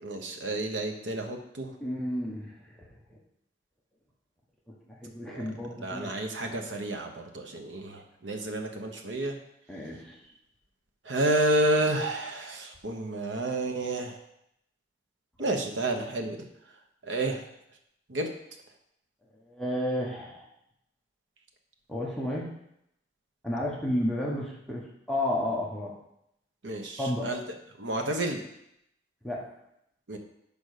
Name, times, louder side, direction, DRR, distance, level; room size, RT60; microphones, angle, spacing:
voice 1, 0.0-1.7 5.3-5.5 5.8-9.4 11.1-14.2 15.4-16.4 17.1-17.4 18.1-18.3 26.6-27.4 27.8-28.4 30.1-30.2, right 1 dB, 80° right, 4 dB, 1.1 m, -30 dB
voice 2, 1.8-2.5 3.1-3.2 5.0-6.6 9.7-10.1 19.5-20.5 21.9-22.5 23.4-25.9 27.0-27.3 29.2-29.4, left 1 dB, 5° left, -5 dB, 1.1 m, -32 dB
5.3 x 5.2 x 6.5 m, 0.79 s
head